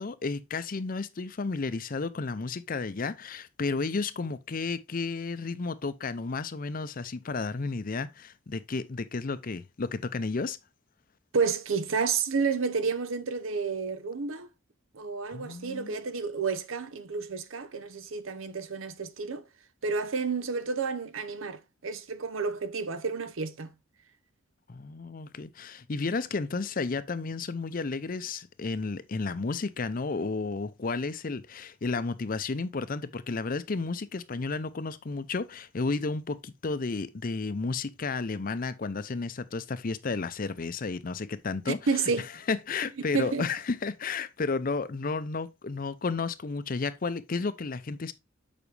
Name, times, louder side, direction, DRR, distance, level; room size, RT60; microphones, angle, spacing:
voice 1, 0.0-10.6 15.3-15.9 24.7-41.8 42.5-48.1, left 4 dB, 45° left, 0.5 m, -32 dB
voice 2, 11.3-14.5 14.9-19.5 19.8-23.7 41.7-42.3 43.1-43.5, right 5 dB, 85° right, 0.8 m, -30 dB
7.1 x 4.9 x 3.3 m
head